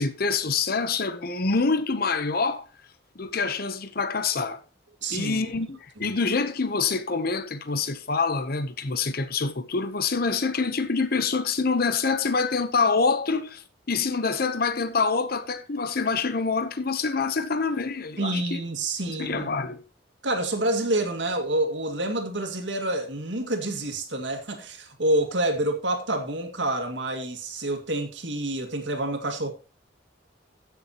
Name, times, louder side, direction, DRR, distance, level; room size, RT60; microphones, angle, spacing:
voice 1, 0.0-2.6 3.2-4.6 5.1-18.6 19.1-19.8, left 4 dB, 50° left, 0.8 m, -26 dB
voice 2, 5.0-5.4 6.0-6.1 18.2-19.5 20.2-29.5, right 1 dB, 70° right, 2.1 m, -28 dB
15.5 x 6.8 x 2.9 m
head